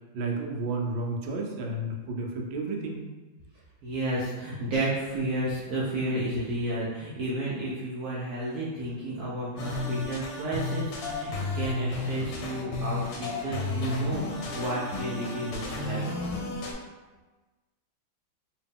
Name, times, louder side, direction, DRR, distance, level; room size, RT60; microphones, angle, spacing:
voice 1, 0.1-3.0, right 2 dB, 85° right, 1 dB, 1.4 m, -32 dB
voice 2, 3.8-16.2, right 1 dB, 70° right, -7 dB, 0.9 m, -32 dB
sound 1, 9.6-16.7, left 2 dB, 75° left, 1.2 m, -32 dB
3.0 x 2.9 x 3.5 m, 1.2 s
omnidirectional pair, 2.2 m